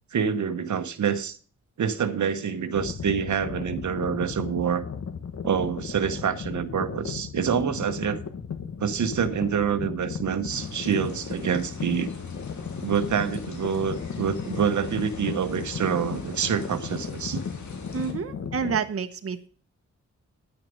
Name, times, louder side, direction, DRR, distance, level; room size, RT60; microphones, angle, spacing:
voice 1, 0.1-1.4 1.8-4.8 5.4-8.2 8.8-12.1 12.8-17.4, right 7 dB, 85° right, 1.0 m, -26 dB
sound 1, 2.7-18.8, left 6 dB, 60° left, 1.4 m, -36 dB
sound 2, 10.5-18.1, left 3 dB, 80° left, 2.6 m, -42 dB
voice 2, 17.9-19.5, right 6 dB, 55° right, 1.0 m, -29 dB
10.0 x 9.5 x 5.1 m
wide cardioid pair, 170°, 29 cm